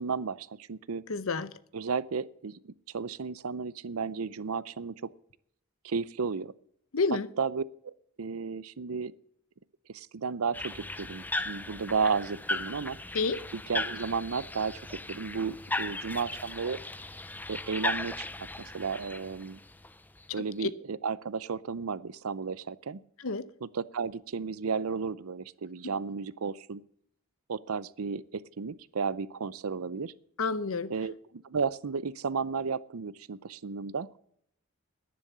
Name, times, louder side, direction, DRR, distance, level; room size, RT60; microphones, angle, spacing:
voice 1, 0.0-1.0 1.7-5.0 5.8-6.5 7.4-7.6 8.2-9.1 9.9-13.0 13.5-16.8 17.5-18.5 18.7-19.6 20.3-23.0 23.6-26.8 27.5-30.1 30.9-34.2, right 5 dB, 85° right, 0.6 m, -33 dB
voice 2, 1.1-1.5 6.9-7.3 13.1-13.4 20.6-20.7 23.2-23.5 30.4-30.9, left 4 dB, 70° left, 0.8 m, -29 dB
sound 1, 10.5-20.2, left 2 dB, 10° left, 0.5 m, -37 dB
10.5 x 10.5 x 7.4 m
head